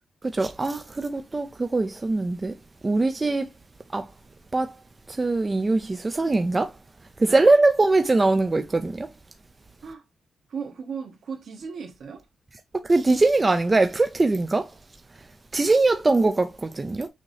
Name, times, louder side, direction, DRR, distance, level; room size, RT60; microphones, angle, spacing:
voice 1, 0.3-2.5 2.8-3.5 3.9-4.1 4.5-4.7 5.1-6.7 7.2-9.1 12.9-14.7 15.5-17.1, right 2 dB, 20° right, 0.4 m, -22 dB
voice 2, 7.3-7.6 9.8-10.0 10.5-12.2, right 6 dB, 65° right, 1.3 m, -36 dB
6.2 x 2.7 x 3.2 m
wide cardioid pair, 160°, 0 cm